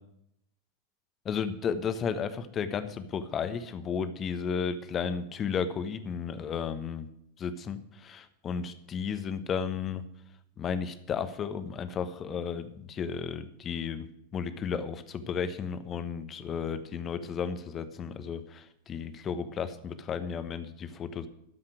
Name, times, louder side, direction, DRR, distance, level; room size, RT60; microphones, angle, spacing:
voice 1, 1.2-7.1 7.4-10.0 10.6-14.1 14.3-21.3, left 6 dB, 25° left, 11 dB, 1.1 m, -33 dB
13.0 x 5.7 x 9.0 m, 0.76 s
figure-of-eight pair, 90°, 0 cm